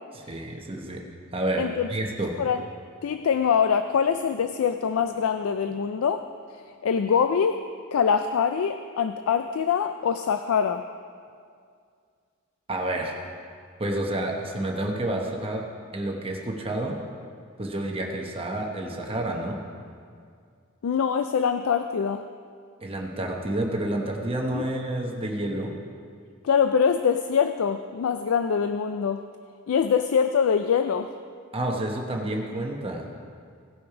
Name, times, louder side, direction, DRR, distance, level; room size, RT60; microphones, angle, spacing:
voice 1, 0.2-1.0 1.3-2.4 12.7-13.1 13.8-15.6 15.9-17.0 17.6-19.6 22.8-25.7 31.5-33.1, right 1 dB, 25° right, 1 dB, 0.9 m, -29 dB
voice 2, 1.6-1.9 2.4-2.6 3.0-6.3 6.8-10.9 20.8-22.2 24.5-24.6 26.4-29.2 29.7-31.1, left 7 dB, 75° left, 9 dB, 0.4 m, -24 dB
17.5 x 5.9 x 4.9 m, 2.2 s
head